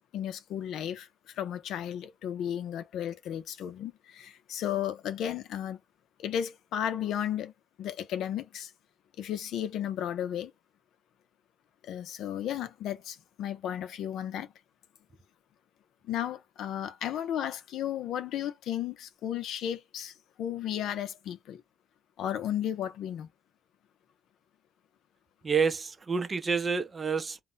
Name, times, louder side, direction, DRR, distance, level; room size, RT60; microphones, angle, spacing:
voice 1, 0.1-5.8 6.2-7.5 7.8-8.7 9.2-10.5 11.8-14.5 16.1-21.6 22.2-23.3, left 10 dB, 80° left, 0.5 m, -34 dB
voice 2, 25.4-27.4, right 5 dB, 35° right, 0.6 m, -28 dB
2.2 x 2.1 x 3.8 m
cardioid pair, 90°, 0 cm